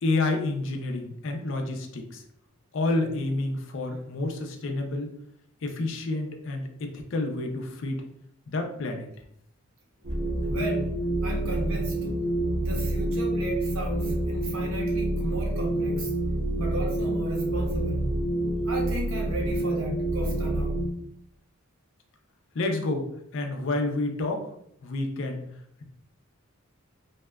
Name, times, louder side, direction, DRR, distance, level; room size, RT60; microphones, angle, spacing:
voice 1, 0.0-2.2 2.7-5.1 5.6-8.0 8.5-9.1 22.5-23.0 23.3-24.4 24.8-25.4, left 2 dB, 60° left, 3 dB, 0.4 m, -29 dB
sound 1, 10.0-20.9, right 1 dB, 40° right, 0.6 m, -28 dB
voice 2, 10.5-10.9 11.2-12.0 12.6-16.1 16.6-18.1 18.7-20.8, right 1 dB, 75° right, -1 dB, 0.7 m, -34 dB
2.7 x 2.2 x 2.2 m, 0.71 s
head